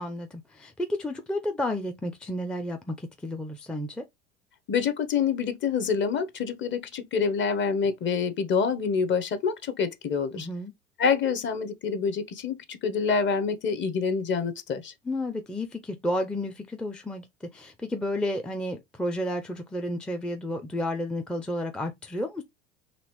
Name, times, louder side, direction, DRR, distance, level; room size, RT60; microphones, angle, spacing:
voice 1, 0.0-4.0 10.3-10.7 15.0-22.4, left 1 dB, ahead, 0.4 m, -31 dB
voice 2, 4.7-10.5 11.0-14.9, left 6 dB, 30° left, 0.8 m, -27 dB
4.1 x 2.9 x 3.0 m
hypercardioid pair, 75°, 36 cm